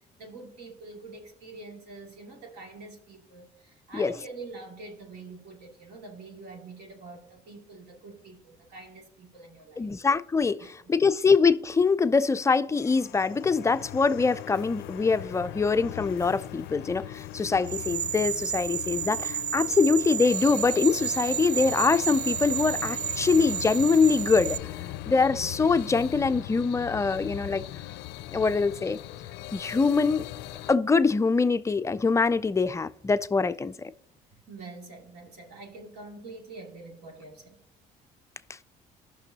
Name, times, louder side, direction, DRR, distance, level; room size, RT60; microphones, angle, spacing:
voice 1, 0.0-9.9 10.6-11.2 33.6-33.7 34.3-37.6, right 3 dB, 70° right, 2.6 m, -45 dB
voice 2, 9.8-24.6 25.1-27.6 28.3-29.0 29.5-30.2 30.7-33.7, left 4 dB, 15° left, 0.3 m, -24 dB
sound 1, 12.8-30.8, left 14 dB, 85° left, 0.4 m, -40 dB
sound 2, 17.7-24.6, right 9 dB, 50° right, 0.4 m, -32 dB
14.5 x 6.0 x 2.8 m
cardioid pair, 110°, 17 cm